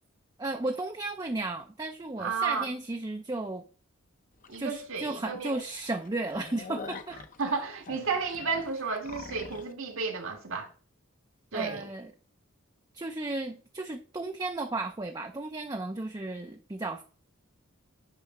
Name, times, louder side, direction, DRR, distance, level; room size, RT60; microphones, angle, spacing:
voice 1, 0.4-3.6 4.6-7.2 11.5-12.1 12.9-17.0, right 2 dB, 20° right, 0.5 m, -34 dB
voice 2, 2.2-2.6 4.5-5.6 7.4-10.7 11.5-11.9, right 5 dB, 75° right, 1.6 m, -32 dB
sound 1, 4.4-4.6 5.0-5.1 5.5-5.6 5.9-9.7, left 4 dB, 40° left, 0.7 m, -44 dB
9.8 x 3.3 x 5.9 m
head